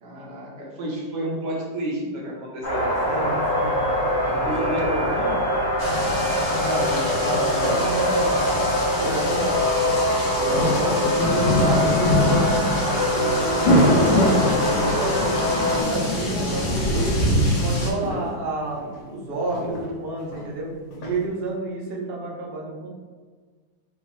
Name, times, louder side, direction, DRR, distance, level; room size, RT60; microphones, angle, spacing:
voice 1, 0.0-3.4 4.4-5.4 7.5-8.2 10.4-11.2, equal, 60° right, -2 dB, 1.5 m, -31 dB
sound 1, 2.6-15.8, left 1 dB, 35° left, 0.8 m, -23 dB
voice 2, 3.1-3.9 4.2-4.8 6.6-8.3 9.0-9.6 10.4-12.5 12.8-15.2 15.6-17.2 17.6-20.7 21.0-22.9, right 2 dB, 85° right, -2 dB, 0.5 m, -29 dB
sound 2, 5.8-17.9, left 1 dB, 60° left, 1.3 m, -24 dB
sound 3, 7.6-15.6 15.9-16.3 16.6-21.3, left 1 dB, 85° left, 2.1 m, -39 dB
5.4 x 2.1 x 4.6 m, 1.5 s
omnidirectional pair, 2.2 m